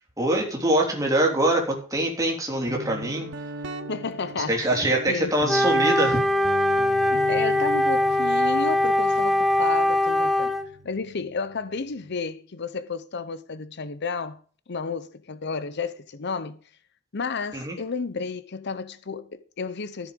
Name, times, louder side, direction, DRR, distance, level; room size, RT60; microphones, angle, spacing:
voice 1, 0.2-3.3 4.5-6.2 17.5-17.8, right 1 dB, 15° right, 3.5 m, -24 dB
Guitar, 2.7-12.2, right 2 dB, 65° right, 1.3 m, -39 dB
voice 2, 3.9-4.7 5.1-5.3 7.0-10.5 10.8-14.4 14.7-16.6 17.1-20.1, left 4 dB, 55° left, 0.7 m, -32 dB
Wind instrument woodwind instrument, 5.5-10.7, left 1 dB, ahead, 1.0 m, -22 dB
13.5 x 7.2 x 5.2 m
head